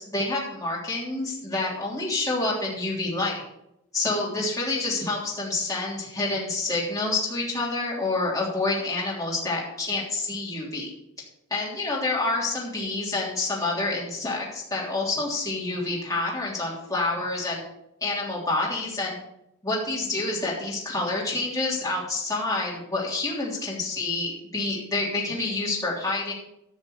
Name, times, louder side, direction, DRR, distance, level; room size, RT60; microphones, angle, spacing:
voice 1, 0.0-3.4 3.9-10.9 11.5-17.6 18.0-19.1 19.6-26.3, left 2 dB, 15° left, -5 dB, 3.2 m, -28 dB
12.5 x 6.3 x 6.5 m, 0.82 s
head